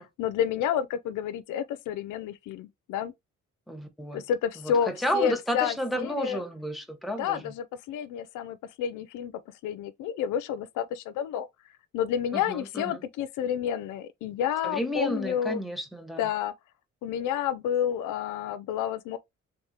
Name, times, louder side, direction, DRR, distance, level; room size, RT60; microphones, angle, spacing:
voice 1, 0.0-3.1 4.1-6.4 7.2-9.3 9.6-11.5 11.9-15.6 16.2-16.5 17.0-19.2, left 9 dB, 85° left, 0.5 m, -30 dB
voice 2, 3.7-4.2 4.6-7.4 12.3-13.0 14.6-16.3, equal, ahead, 1.0 m, -32 dB
3.5 x 3.5 x 2.8 m
cardioid pair, 90°, 30 cm